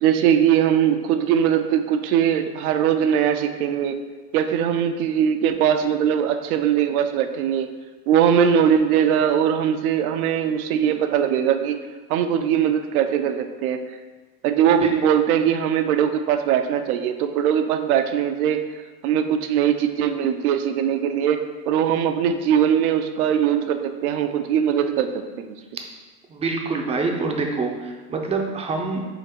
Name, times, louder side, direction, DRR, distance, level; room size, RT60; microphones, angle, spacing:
voice 1, 0.0-4.0 4.3-7.7 8.1-11.8 12.1-13.8 14.4-18.6 19.0-25.5, right 9 dB, 75° right, 8 dB, 0.6 m, -21 dB
voice 2, 26.3-29.1, right 3 dB, 15° right, 2 dB, 0.4 m, -26 dB
3.8 x 2.9 x 4.3 m, 1.3 s
hypercardioid pair, 100°, 44 cm